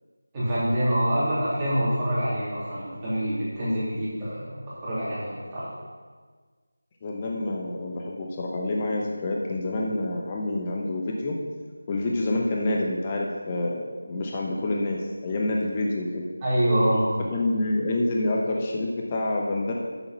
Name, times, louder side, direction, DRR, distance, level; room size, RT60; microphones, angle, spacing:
voice 1, 0.3-5.7 16.4-17.0, equal, 15° right, -12 dB, 3.1 m, -26 dB
voice 2, 7.0-11.4 11.9-16.2 17.3-19.7, left 2 dB, 25° left, -1 dB, 0.9 m, -27 dB
8.8 x 7.2 x 5.5 m, 1.5 s
figure-of-eight pair, 165°, 0 cm